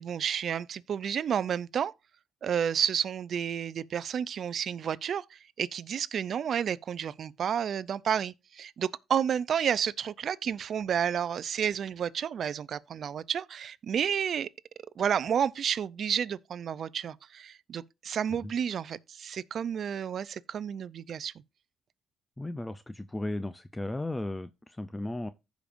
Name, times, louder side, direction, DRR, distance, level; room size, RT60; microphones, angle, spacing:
voice 1, 0.0-1.9 2.4-14.5 15.0-21.3, right 8 dB, 60° right, 0.4 m, -31 dB
voice 2, 22.4-25.3, left 1 dB, 15° left, 0.5 m, -35 dB
15.5 x 5.1 x 2.5 m
cardioid pair, 90°, 0 cm